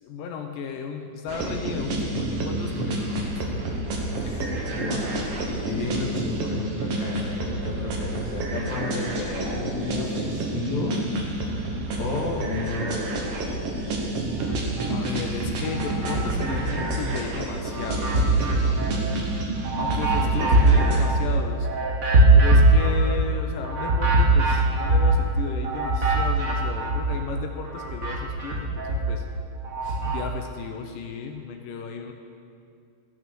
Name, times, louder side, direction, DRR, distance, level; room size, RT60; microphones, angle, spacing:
voice 1, 0.0-3.6 14.9-18.8 19.8-21.7 22.3-29.2 30.0-32.1, left 6 dB, 80° left, 4 dB, 2.3 m, -34 dB
sound 1, 1.3-21.0, right 2 dB, 60° right, 1.8 m, -29 dB
voice 2, 4.2-11.0 12.0-13.3 29.8-30.2, left 3 dB, 60° left, -3 dB, 2.6 m, -33 dB
sound 2, 14.4-15.2 15.6-17.2 17.6-27.3 27.6-30.2, right 2 dB, 85° right, 0.7 m, -22 dB
15.0 x 6.8 x 6.1 m, 2.4 s
omnidirectional pair, 4.0 m